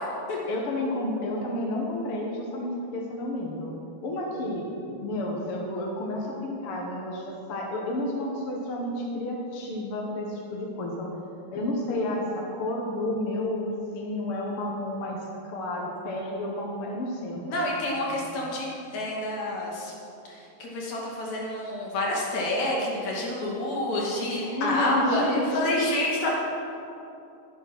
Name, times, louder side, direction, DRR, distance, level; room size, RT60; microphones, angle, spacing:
voice 1, 0.5-3.7 4.0-11.1 11.5-17.4 18.1-18.2 24.3-25.8, left 1 dB, 50° left, -1 dB, 2.1 m, -31 dB
voice 2, 17.5-18.7 18.9-19.9 20.3-26.3, left 1 dB, 70° left, -3 dB, 3.7 m, -28 dB
12.0 x 11.5 x 6.1 m, 2.8 s
omnidirectional pair, 3.5 m